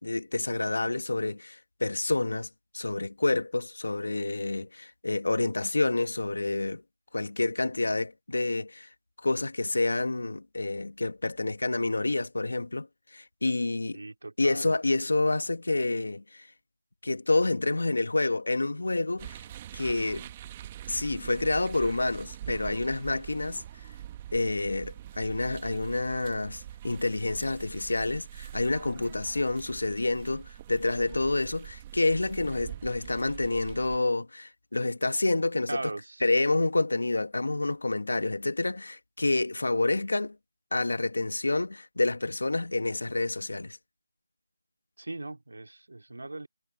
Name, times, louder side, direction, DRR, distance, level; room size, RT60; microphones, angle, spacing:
voice 1, 0.0-2.5 2.7-6.8 7.1-8.9 9.2-12.9 13.1-14.0 14.4-16.5 17.0-19.4 19.7-20.3 20.9-23.6 24.3-35.8 36.2-40.4 40.7-43.8, left 2 dB, 80° left, 1.6 m, -28 dB
voice 2, 13.9-14.8 35.7-36.3 45.0-46.5, right 2 dB, 90° right, 2.4 m, -38 dB
sound 1, 19.2-34.0, right 12 dB, 15° right, 1.2 m, -44 dB
figure-of-eight pair, 175°, 0 cm